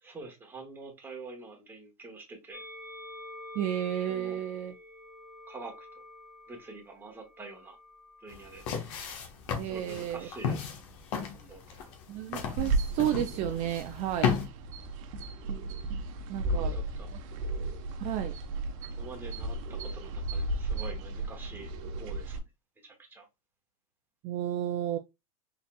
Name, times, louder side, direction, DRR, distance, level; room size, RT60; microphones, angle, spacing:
voice 1, 0.0-2.7 4.1-4.4 5.5-6.0 6.5-7.8 8.2-8.6 9.6-10.8 11.3-11.9 16.4-17.1 19.0-21.7 22.0-22.4 22.8-23.2, right 3 dB, 10° right, 1.3 m, -46 dB
Musical instrument, 2.5-8.9 9.8-10.8, left 1 dB, 25° left, 2.2 m, -49 dB
voice 2, 3.5-4.7 9.5-10.3 12.1-14.3 16.3-16.8 17.1-17.2 18.0-18.3 24.2-25.0, right 11 dB, 40° right, 0.4 m, -32 dB
sound 1, 8.3-14.5, left 7 dB, 55° left, 1.2 m, -34 dB
sound 2, 12.6-22.4, right 2 dB, 60° right, 0.9 m, -34 dB
4.1 x 3.9 x 2.2 m
supercardioid pair, 140°, 19 cm